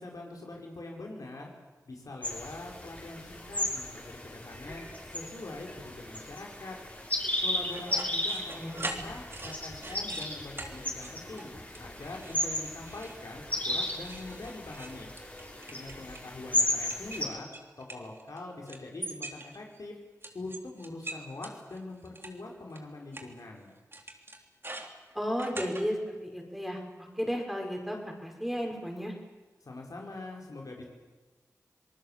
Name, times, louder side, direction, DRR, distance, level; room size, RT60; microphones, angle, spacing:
voice 1, 0.0-1.5 1.8-4.8 5.1-6.8 7.4-15.1 15.7-17.5 17.8-20.0 20.3-23.7 29.6-30.9, left 2 dB, 70° left, 0 dB, 5.1 m, -43 dB
sound 1, 2.2-17.3, left 1 dB, 25° left, 6.6 m, -35 dB
sound 2, 7.7-10.3 10.6-10.7 11.0-11.5 11.7-12.4 12.6-13.2 13.6-16.3 16.8-18.4 18.7-19.8 20.2-22.3 22.8-22.9 23.1-23.2 23.9-25.8, right 2 dB, 40° right, 3.3 m, -42 dB
voice 2, 8.6-8.9 25.1-29.1, equal, ahead, 2 dB, 6.0 m, -34 dB
27.0 x 19.0 x 7.5 m, 1.2 s
cardioid pair, 45°, 6 cm